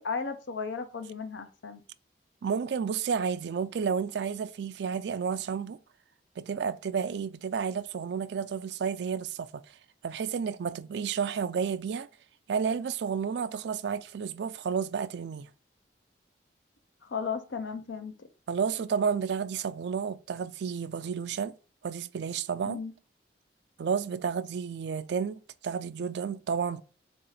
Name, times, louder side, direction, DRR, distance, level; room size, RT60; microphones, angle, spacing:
voice 1, 0.0-1.8 17.0-18.3 22.7-22.9, left 5 dB, 90° left, 0.6 m, -35 dB
voice 2, 2.4-5.8 6.4-9.6 10.0-12.1 12.5-15.5 18.5-21.5 21.8-22.8 23.8-26.8, right 6 dB, 70° right, 0.3 m, -31 dB
4.1 x 2.9 x 3.9 m
head